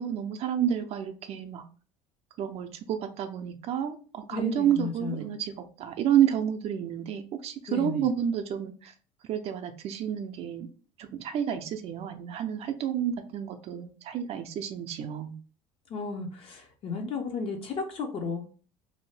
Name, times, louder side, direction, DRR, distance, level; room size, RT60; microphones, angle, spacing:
voice 1, 0.0-1.6 2.4-8.9 9.3-10.7 11.0-15.3, right 9 dB, 50° right, 6 dB, 0.4 m, -30 dB
voice 2, 4.3-5.3 7.7-8.1 15.9-18.4, left 4 dB, 45° left, 3 dB, 0.6 m, -34 dB
2.6 x 2.1 x 3.1 m, 0.39 s
supercardioid pair, 95°, 13 cm